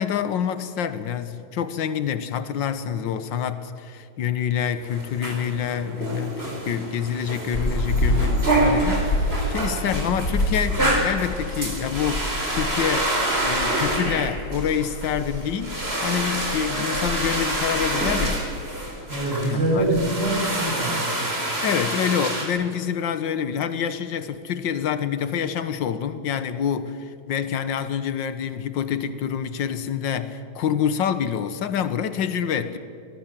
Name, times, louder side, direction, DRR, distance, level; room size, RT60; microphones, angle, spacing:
voice 1, 0.0-13.1 13.4-18.4 19.4-19.8 21.6-32.8, left 8 dB, 60° left, 1.2 m, -27 dB
sound 1, 4.8-22.5, right 2 dB, 20° right, 4.4 m, -27 dB
sound 2, 7.5-20.7, left 1 dB, 35° left, 2.1 m, -29 dB
voice 2, 19.1-21.3, right 1 dB, 35° right, 8.5 m, -24 dB
27.0 x 20.5 x 7.5 m
omnidirectional pair, 3.3 m